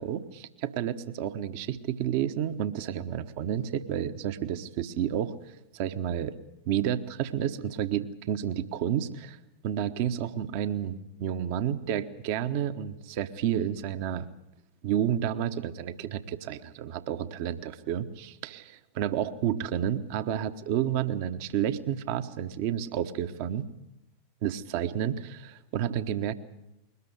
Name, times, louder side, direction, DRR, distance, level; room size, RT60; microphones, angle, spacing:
voice 1, 0.0-5.3 5.7-6.3 6.7-9.4 9.6-14.2 14.8-23.7 24.4-26.3, right 10 dB, 45° right, 11 dB, 1.1 m, -30 dB
22.0 x 19.5 x 8.0 m, 0.87 s
figure-of-eight pair, 90°, 0 cm